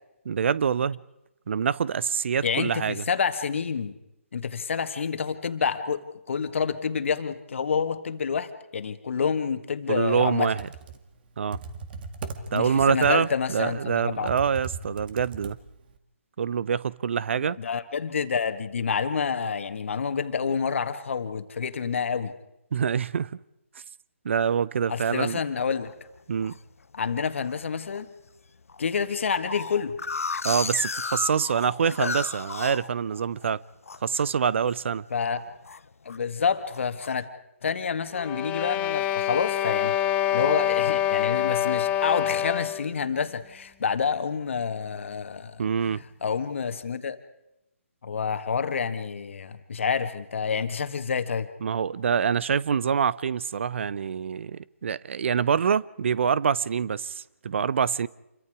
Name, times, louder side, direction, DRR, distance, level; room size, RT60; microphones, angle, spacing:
voice 1, 0.2-1.0 1.5-3.0 9.9-10.7 11.4-11.6 12.5-15.6 16.4-17.6 22.7-23.3 24.2-25.4 26.3-26.6 30.4-33.6 34.0-35.0 45.6-46.0 51.6-58.1, right 7 dB, 55° right, 0.7 m, -25 dB
voice 2, 2.4-4.0 4.3-6.0 6.3-10.5 12.5-14.3 17.4-22.3 24.9-25.9 26.9-28.1 28.8-30.0 32.0-32.1 35.1-35.4 36.0-37.3 37.6-40.0 40.3-47.2 48.0-51.5, left 6 dB, 60° left, 1.8 m, -28 dB
Computer keyboard, 10.4-16.0, right 5 dB, 40° right, 2.0 m, -39 dB
sound 1, 25.9-26.6 27.1-27.5 27.9-28.0 28.3-28.4 28.7-33.5 33.8-34.3 34.6-34.9 35.2-36.2 36.7-37.1, left 4 dB, 75° left, 0.7 m, -34 dB
sound 2, 38.2-42.9, left 12 dB, 20° left, 0.8 m, -25 dB
28.0 x 23.0 x 4.9 m
figure-of-eight pair, 145°, 8 cm